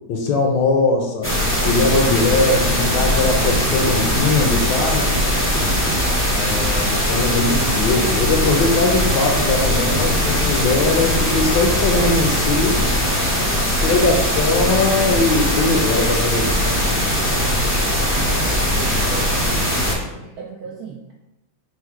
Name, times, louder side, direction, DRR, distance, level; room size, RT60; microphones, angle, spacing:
voice 1, 0.1-1.4 1.6-5.2 6.2-13.0 13.8-16.8, left 3 dB, 70° left, 2 dB, 1.2 m, -20 dB
sound 1, 1.2-19.9, equal, 15° left, 0.5 m, -20 dB
voice 2, 17.3-18.1 18.4-19.6 19.9-21.2, right 6 dB, 80° right, -2 dB, 0.8 m, -36 dB
4.4 x 2.1 x 4.6 m, 0.94 s
omnidirectional pair, 2.1 m